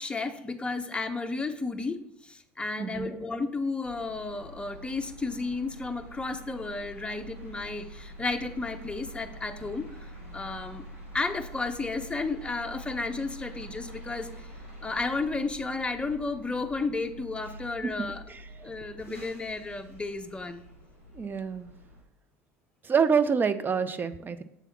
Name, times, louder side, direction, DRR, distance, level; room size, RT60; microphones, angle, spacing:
voice 1, 0.0-10.8 11.1-14.3 14.8-18.2 18.5-20.6, left 3 dB, 15° left, 7 dB, 0.7 m, -33 dB
voice 2, 2.8-3.1 17.8-18.4 21.1-21.7 22.8-24.4, right 6 dB, 25° right, 11 dB, 0.6 m, -27 dB
sound 1, 3.8-22.0, equal, 85° right, 2.7 m, -46 dB
7.0 x 3.5 x 6.0 m, 0.79 s
hypercardioid pair, 70°, 8 cm